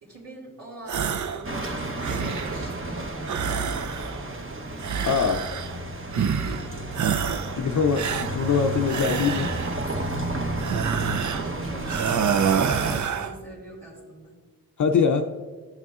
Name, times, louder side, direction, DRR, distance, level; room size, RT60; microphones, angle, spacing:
voice 1, 0.0-3.7 6.1-6.8 11.3-14.4, right 2 dB, 80° right, -7 dB, 2.3 m, -43 dB
sound 1, 0.9-1.5 1.8-2.7 3.2-4.3 4.8-5.8 6.1-6.7 6.9-7.6 7.9-9.8 10.6-11.5 11.8-13.4, right 7 dB, 55° right, 0.5 m, -27 dB
sound 2, 1.4-13.0, right 1 dB, 35° right, 1.0 m, -32 dB
voice 2, 5.1-5.4 7.6-9.5 14.8-15.3, left 6 dB, 55° left, 4 dB, 0.6 m, -23 dB
12.5 x 6.5 x 2.4 m, 1.4 s
cardioid pair, 50°, 36 cm